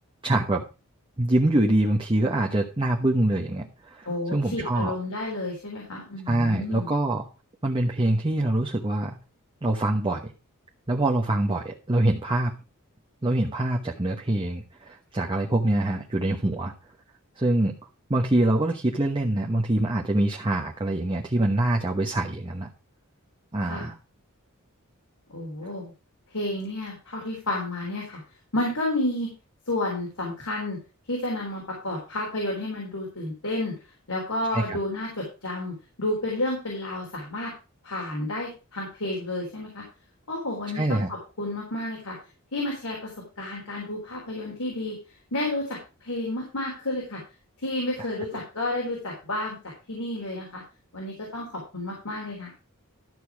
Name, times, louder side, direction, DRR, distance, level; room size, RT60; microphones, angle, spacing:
voice 1, 0.2-0.6 1.2-5.0 6.3-7.3 7.6-9.2 9.6-10.3 10.9-12.5 13.2-16.7 17.4-17.7 18.1-22.7 23.5-23.9 34.5-34.8 40.7-41.1, right 1 dB, 25° right, 0 dB, 1.1 m, -24 dB
voice 2, 4.1-6.9 23.6-23.9 25.3-25.9 26.3-28.2 28.5-29.3 29.7-30.8 31.1-33.7 34.1-37.5 37.8-39.8 40.3-42.1 42.5-43.1 43.4-45.0 45.3-47.2 47.6-50.6 50.9-52.5, left 1 dB, 80° left, -2 dB, 3.7 m, -31 dB
12.5 x 6.8 x 4.7 m, 0.31 s
head